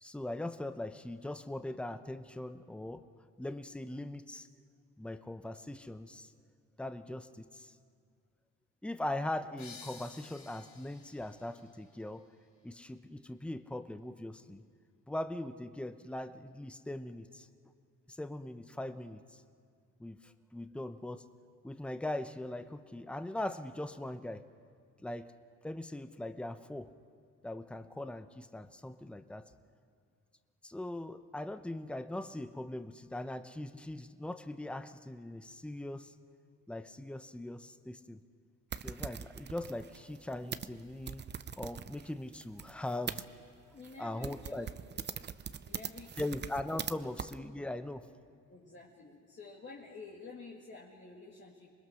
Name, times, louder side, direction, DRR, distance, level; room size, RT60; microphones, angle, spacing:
voice 1, 0.0-3.0 3.4-4.5 5.0-6.3 6.8-7.7 8.8-12.2 12.6-14.6 15.1-17.5 18.1-19.4 20.0-21.2 21.6-24.4 25.0-25.3 25.6-26.9 27.4-29.5 30.6-36.1 36.7-38.2 38.8-41.2 41.6-43.2 44.0-44.7 46.2-48.1, left 1 dB, 5° left, 10 dB, 0.8 m, -40 dB
sound 1, 9.6-13.0, left 5 dB, 65° left, 3.1 m, -55 dB
sound 2, 38.7-43.2 43.8-44.0 44.2-46.9 47.2-47.4, right 7 dB, 35° right, 0.7 m, -42 dB
voice 2, 43.7-44.7 45.7-46.3 46.9-47.1 48.5-51.7, left 4 dB, 40° left, -3 dB, 2.4 m, -50 dB
27.0 x 20.5 x 6.4 m, 2.2 s
cardioid pair, 90°, 30 cm